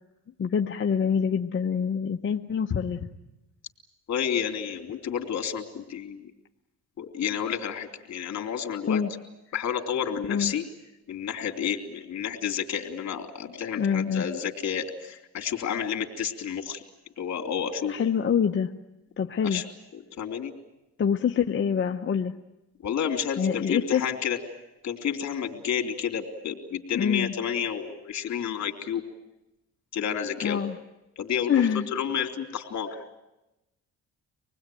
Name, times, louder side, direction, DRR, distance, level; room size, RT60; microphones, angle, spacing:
voice 1, 0.4-3.0 8.9-9.1 10.3-10.5 13.8-14.2 17.9-18.7 19.2-19.6 21.0-22.3 23.4-24.0 26.9-27.3 30.4-30.7 31.5-31.9, left 7 dB, 40° left, 3 dB, 1.0 m, -25 dB
voice 2, 4.1-6.3 7.0-9.0 9.5-10.6 11.1-16.8 17.2-17.9 19.4-19.6 20.2-20.5 22.8-24.4 24.8-29.0 29.9-30.6 31.2-31.6 31.9-32.9, left 8 dB, 60° left, 4 dB, 3.0 m, -30 dB
26.0 x 20.0 x 9.2 m, 0.95 s
cardioid pair, 90°, 30 cm